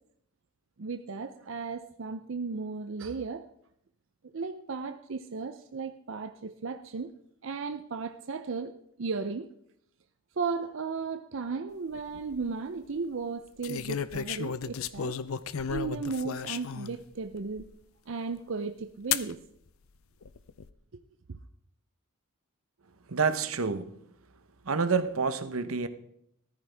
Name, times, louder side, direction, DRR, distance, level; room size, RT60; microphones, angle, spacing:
voice 1, 0.8-3.5 4.2-7.1 7.4-9.5 10.4-15.2 15.7-17.7 18.1-19.4 21.3-21.4, right 4 dB, 60° right, 0.6 m, -35 dB
sound 1, 11.9-12.4 13.6-17.0 17.6-17.7 19.1-19.3 20.2-20.7, left 7 dB, 75° left, 0.5 m, -33 dB
voice 2, 23.1-23.9 24.6-25.9, right 5 dB, 80° right, 0.9 m, -28 dB
14.5 x 13.5 x 3.4 m
head